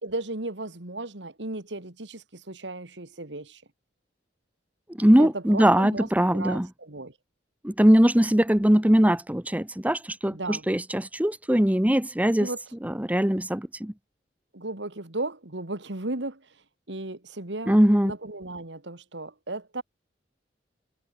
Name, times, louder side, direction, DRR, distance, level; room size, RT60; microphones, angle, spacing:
voice 1, 0.0-3.6 5.2-7.2 10.3-10.7 12.4-12.6 14.5-17.8 18.0-19.8, right 2 dB, 75° right, 2.5 m, -35 dB
voice 2, 5.0-6.7 7.6-12.5 12.8-13.9 17.7-18.1, equal, 10° right, 1.0 m, -21 dB
head